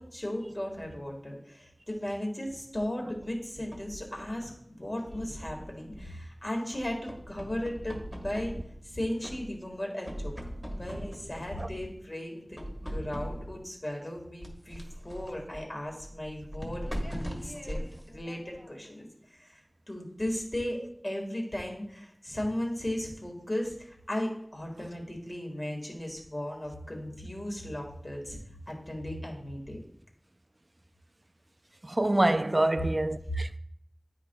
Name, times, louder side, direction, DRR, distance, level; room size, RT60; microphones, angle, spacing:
voice 1, 0.0-8.0 8.2-8.5 8.8-10.3 10.8-19.6 19.9-28.4 28.7-29.8, left 1 dB, 45° left, 1.8 m, -36 dB
sound 1, 3.2-4.5 5.0-6.3 6.7-8.9 9.2-9.8 10.0-12.0 12.6-13.6 14.4-18.9, equal, 25° left, 1.7 m, -40 dB
voice 2, 31.8-33.6, right 1 dB, 45° right, 0.3 m, -26 dB
10.0 x 4.7 x 2.3 m
wide cardioid pair, 45°, 0 cm